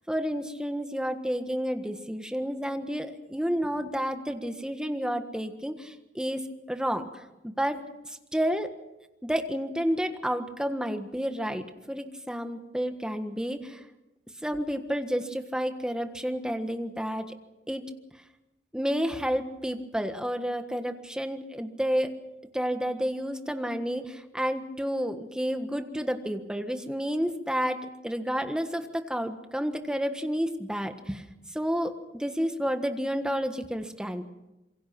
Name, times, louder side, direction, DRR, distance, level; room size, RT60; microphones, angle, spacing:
voice 1, 0.1-8.7 9.2-13.8 14.4-17.3 17.7-17.9 18.7-22.1 22.5-31.2 31.5-34.2, equal, 5° right, 7 dB, 1.5 m, -30 dB
27.0 x 23.0 x 6.0 m, 0.97 s
head